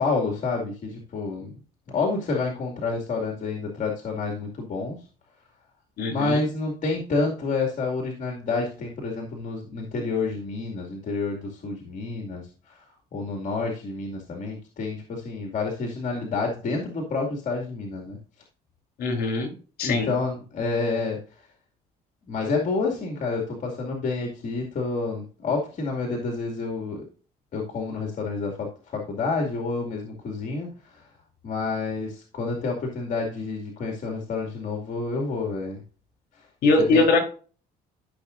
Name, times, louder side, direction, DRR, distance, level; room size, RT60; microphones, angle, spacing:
voice 1, 0.0-1.5 1.9-5.0 6.1-12.8 13.1-18.2 19.8-21.2 22.3-27.0 27.5-28.7 28.9-31.0 31.4-35.8 36.9-37.0, left 3 dB, 50° left, 1 dB, 2.4 m, -29 dB
voice 2, 6.0-6.4 19.0-19.5 19.8-20.1 36.6-37.2, left 3 dB, 65° left, 3 dB, 3.6 m, -21 dB
13.5 x 6.1 x 2.6 m, 0.38 s
cardioid pair, 110°, 17 cm